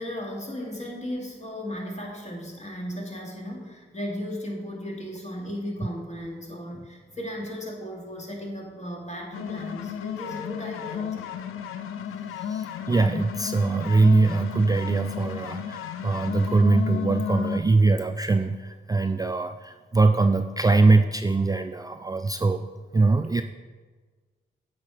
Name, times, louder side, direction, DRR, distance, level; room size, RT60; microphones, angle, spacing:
voice 1, 0.0-11.4, equal, 35° left, -1 dB, 2.3 m, -36 dB
sound 1, 9.3-17.6, left 8 dB, 85° left, 0.5 m, -33 dB
voice 2, 12.4-22.7 22.9-23.4, right 3 dB, 20° right, 8 dB, 0.3 m, -22 dB
8.3 x 4.3 x 4.8 m, 1.4 s
supercardioid pair, 45°, 21 cm